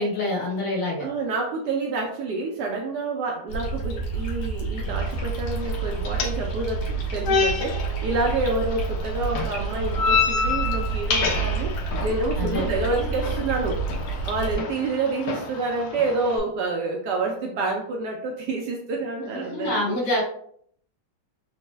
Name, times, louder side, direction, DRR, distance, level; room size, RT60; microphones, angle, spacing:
voice 1, 0.0-1.1 12.4-12.7 19.3-20.2, left 1 dB, 50° left, -5 dB, 1.3 m, -26 dB
voice 2, 1.0-13.8 14.2-20.0, right 3 dB, 75° right, 1 dB, 0.9 m, -28 dB
sound 1, 3.5-14.6, right 4 dB, 85° left, 1.9 m, -29 dB
sound 2, 4.9-16.4, left 4 dB, 70° left, 1.0 m, -29 dB
4.1 x 2.1 x 3.2 m, 0.63 s
omnidirectional pair, 2.3 m